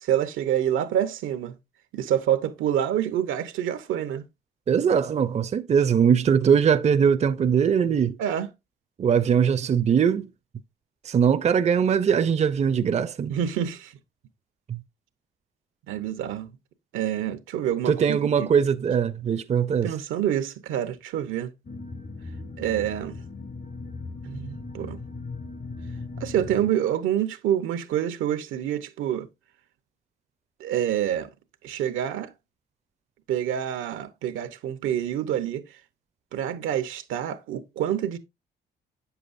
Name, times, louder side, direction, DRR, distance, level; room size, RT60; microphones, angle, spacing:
voice 1, 0.0-1.5 1.9-4.2 8.2-8.5 13.3-13.9 15.9-16.5 16.9-18.5 19.8-21.5 22.6-23.2 24.2-25.0 26.2-29.3 30.6-31.3 31.6-32.3 33.3-35.6 36.3-38.2, right 10 dB, 85° right, 0.9 m, -27 dB
voice 2, 4.7-8.2 9.0-10.3 11.0-13.3 14.7-14.8 17.9-19.9, right 7 dB, 35° right, 0.5 m, -21 dB
sound 1, 21.6-26.7, left 3 dB, 35° left, 0.7 m, -38 dB
7.9 x 6.9 x 2.5 m
cardioid pair, 90°, 20 cm